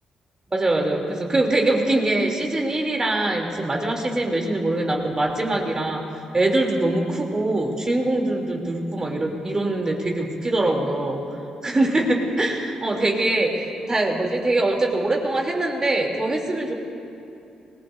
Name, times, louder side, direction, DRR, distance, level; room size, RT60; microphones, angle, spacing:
voice 1, 0.5-6.0 6.3-11.2 11.6-16.8, right 2 dB, 30° right, 1 dB, 3.1 m, -23 dB
26.0 x 19.5 x 2.7 m, 2.8 s
hypercardioid pair, 40°, 2 cm